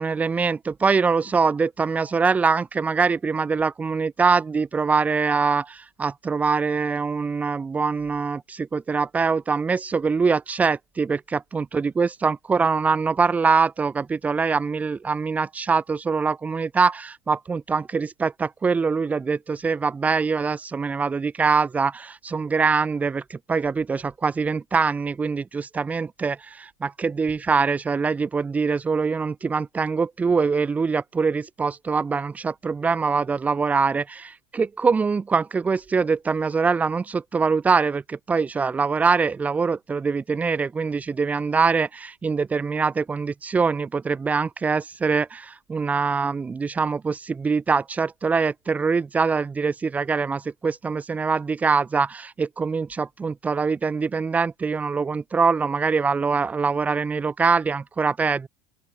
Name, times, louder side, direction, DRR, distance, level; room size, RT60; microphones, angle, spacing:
voice 1, 0.0-58.5, right 5 dB, 15° right, 5.2 m, -23 dB
open air
cardioid pair, 170°, 12 cm